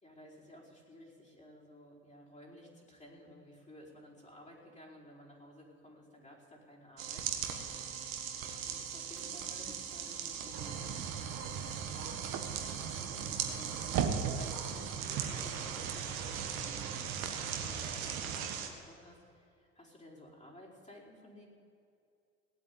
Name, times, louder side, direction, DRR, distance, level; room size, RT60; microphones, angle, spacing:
voice 1, 0.0-11.0 11.9-17.0 17.3-21.5, equal, 15° left, -4 dB, 4.7 m, -55 dB
sound 1, 7.0-18.7, right 8 dB, 80° right, 1.6 m, -40 dB
Motor vehicle (road) / Engine, 9.1-15.6, right 3 dB, 30° right, 4.2 m, -58 dB
sound 2, 10.5-18.5, right 7 dB, 55° right, 1.4 m, -39 dB
17.5 x 8.5 x 8.7 m, 2.4 s
hypercardioid pair, 65°, 41 cm